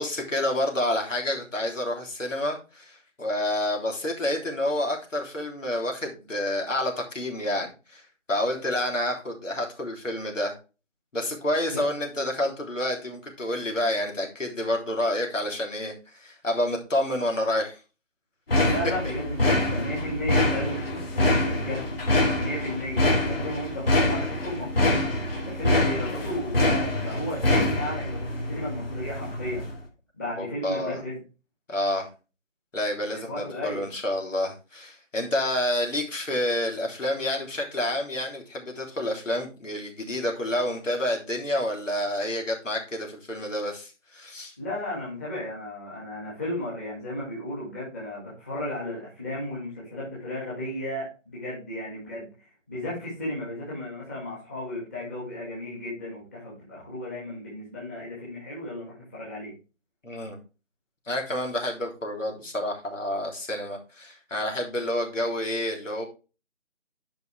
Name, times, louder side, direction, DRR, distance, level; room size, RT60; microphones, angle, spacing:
voice 1, 0.0-8.0 8.3-10.5 11.1-17.8 18.6-18.7 30.4-31.0 31.7-32.1 32.7-44.5 60.0-60.4 61.1-66.1, left 1 dB, 75° left, 1 dB, 3.5 m, -29 dB
sound 1, 18.5-29.8, left 1 dB, 50° left, 2.8 m, -25 dB
voice 2, 18.6-21.9 22.4-25.0 25.4-29.6 30.1-31.2 33.1-33.9 44.6-52.3 52.7-59.5, left 1 dB, 10° left, -7 dB, 2.0 m, -34 dB
11.0 x 5.4 x 3.4 m, 0.32 s
figure-of-eight pair, 175°, 38 cm